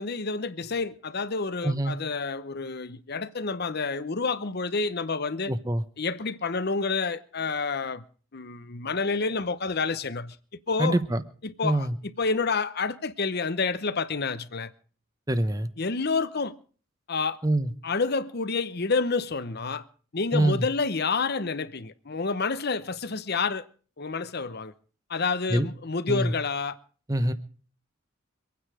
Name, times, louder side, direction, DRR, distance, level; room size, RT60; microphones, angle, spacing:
voice 1, 0.0-5.5 6.0-8.0 8.3-10.4 10.7-11.0 11.4-11.9 12.2-14.7 15.8-16.5 17.1-17.4 17.8-19.8 20.1-23.7 24.0-24.7 25.1-26.8, left 4 dB, 50° left, 0.8 m, -29 dB
voice 2, 1.6-1.9 5.5-5.8 10.8-11.2 11.6-11.9 15.3-15.7 17.4-17.7 20.3-20.7 25.5-25.7 26.1-26.3 27.1-27.3, right 1 dB, 15° right, 0.9 m, -24 dB
25.0 x 9.4 x 4.9 m
head